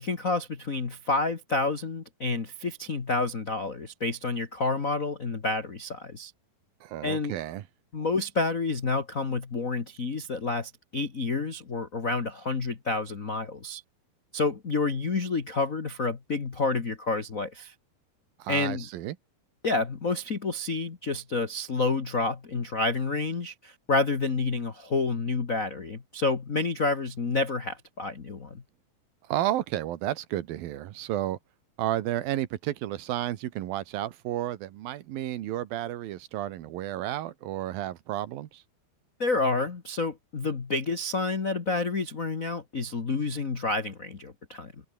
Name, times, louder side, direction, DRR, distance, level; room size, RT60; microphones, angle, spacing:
voice 1, 0.0-6.3 7.0-7.4 7.9-13.8 14.3-17.7 18.5-18.9 19.6-28.6 39.2-44.7, left 3 dB, 85° left, 0.7 m, -29 dB
voice 2, 6.8-7.6 18.4-19.2 29.3-31.4 31.8-38.6, right 13 dB, 70° right, 2.9 m, -32 dB
omnidirectional pair, 4.5 m